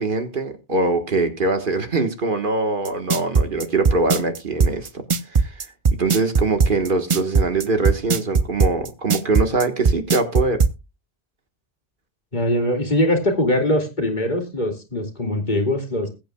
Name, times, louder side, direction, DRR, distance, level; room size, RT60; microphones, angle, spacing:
voice 1, 0.0-5.7 5.9-10.6, right 3 dB, 55° right, 1.6 m, -23 dB
sound 1, 2.8-10.7, right 5 dB, 35° right, 0.6 m, -18 dB
voice 2, 12.3-16.1, left 1 dB, 45° left, 2.4 m, -22 dB
21.0 x 8.4 x 2.3 m
omnidirectional pair, 1.1 m